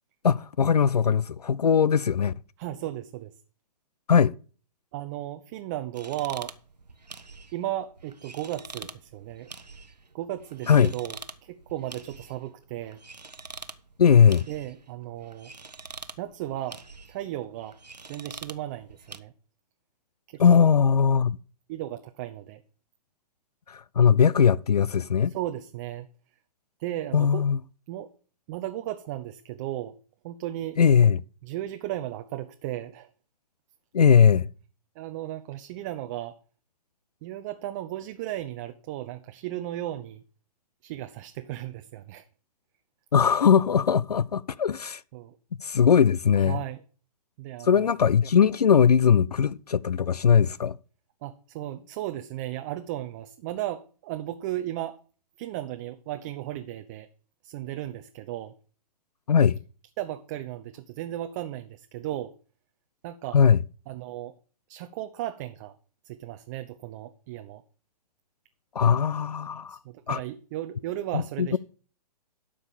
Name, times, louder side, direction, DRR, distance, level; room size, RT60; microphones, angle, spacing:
voice 1, 0.2-2.3 4.1-4.3 10.7-10.9 14.0-14.5 20.4-21.4 23.7-25.3 27.1-27.6 30.8-31.2 33.9-34.5 43.1-45.0 45.6-46.6 47.6-50.8 59.3-59.6 63.3-63.6 68.8-69.8 70.1-70.2 71.1-71.6, left 7 dB, 70° left, 0.4 m, -20 dB
voice 2, 2.6-3.4 4.9-6.5 7.5-9.5 10.1-13.0 14.5-15.5 16.2-16.8 17.1-17.8 18.1-19.3 20.3-20.6 21.1-21.2 21.7-22.6 25.3-26.1 26.8-27.5 27.9-28.1 28.5-30.0 30.2-30.8 31.4-33.1 35.0-36.4 37.2-40.2 40.8-42.3 45.1-45.4 46.4-46.8 47.4-47.9 51.2-55.0 55.4-57.1 57.4-58.5 60.0-62.3 63.0-63.4 63.9-64.4 64.7-65.8 66.0-67.6 69.7-71.6, right 13 dB, 30° right, 0.6 m, -35 dB
sound 1, 5.9-19.2, right 3 dB, 80° right, 0.9 m, -46 dB
12.0 x 5.0 x 7.1 m
figure-of-eight pair, 115°, 21 cm